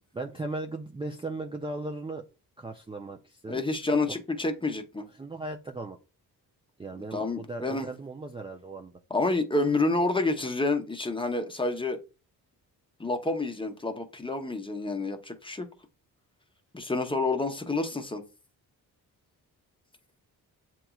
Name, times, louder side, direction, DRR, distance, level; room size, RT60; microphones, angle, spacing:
voice 1, 0.1-2.2 2.6-3.6 5.2-6.0 6.8-8.9, right 2 dB, 15° right, 0.5 m, -37 dB
voice 2, 3.5-5.1 7.1-7.9 9.1-12.0 13.0-15.7 16.7-18.2, left 2 dB, 15° left, 0.8 m, -28 dB
7.5 x 3.0 x 2.3 m
cardioid pair, 75°, 39 cm